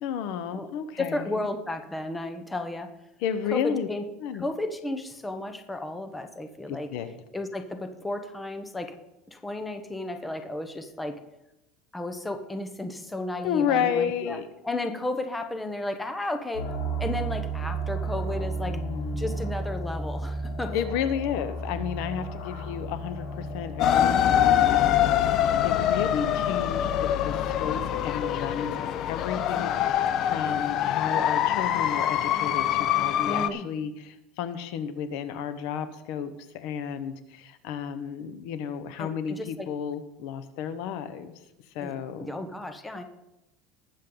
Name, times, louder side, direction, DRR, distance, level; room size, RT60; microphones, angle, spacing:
voice 1, 0.0-1.5 3.2-3.9 4.2-4.4 6.7-7.1 13.4-14.5 18.7-19.4 20.7-41.3 41.7-42.3, left 8 dB, 65° left, 11 dB, 1.0 m, -32 dB
voice 2, 1.0-2.9 3.5-4.0 4.3-6.9 7.3-8.9 9.3-11.2 11.9-14.4 14.6-16.7 17.0-18.8 19.1-20.8 24.9-25.1 33.2-33.7 39.0-39.7 41.8-41.9 42.2-43.0, left 2 dB, 5° left, 7 dB, 0.9 m, -33 dB
sound 1, 16.5-27.8, right 2 dB, 85° left, 5.4 m, -34 dB
sound 2, 23.8-33.5, left 10 dB, 40° left, 0.6 m, -24 dB
19.5 x 7.5 x 3.9 m, 0.92 s
supercardioid pair, 150°, 0 cm